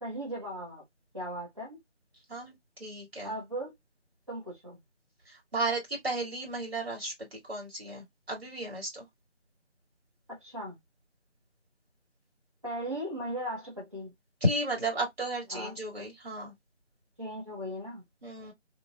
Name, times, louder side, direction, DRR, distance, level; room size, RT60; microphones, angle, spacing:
voice 1, 0.0-0.8 1.1-1.8 3.2-3.7 4.3-4.8 10.3-10.8 12.6-14.1 15.5-15.7 17.2-18.0, equal, 25° right, 1.0 m, -37 dB
voice 2, 2.3-3.3 5.3-9.1 14.4-16.5 18.2-18.5, right 1 dB, 55° right, 2.2 m, -34 dB
3.1 x 2.5 x 2.2 m
figure-of-eight pair, 175°, 36 cm